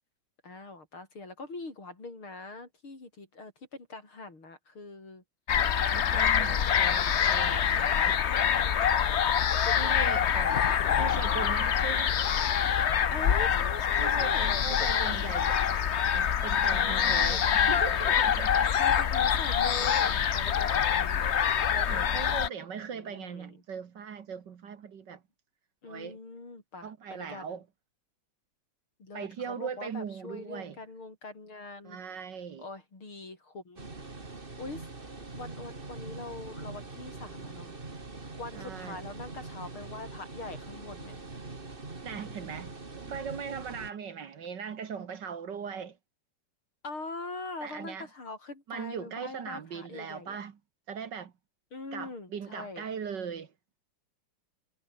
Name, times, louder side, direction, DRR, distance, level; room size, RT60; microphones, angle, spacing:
voice 1, 0.4-5.2 5.9-7.2 8.2-8.8 9.6-10.0 13.1-15.3 16.7-18.2 18.8-21.3 21.7-22.1 22.9-23.6 25.8-27.6 29.0-32.0 32.6-33.9 34.2-38.0 38.4-41.2 46.8-50.4 51.7-52.9, left 3 dB, 75° left, 7.1 m, -43 dB
sound 1, 5.5-22.5, left 8 dB, 55° left, 0.7 m, -25 dB
voice 2, 5.9-8.2 9.8-12.2 14.0-15.8 16.1-18.7 21.9-25.2 25.9-26.2 26.8-27.6 29.1-30.8 31.8-32.7 38.5-39.0 42.0-46.0 47.6-48.1 48.7-50.6 50.9-51.3 51.9-53.5, right 7 dB, 55° right, 2.0 m, -39 dB
sound 2, 33.8-43.9, right 3 dB, 25° right, 2.5 m, -43 dB
omnidirectional pair, 2.3 m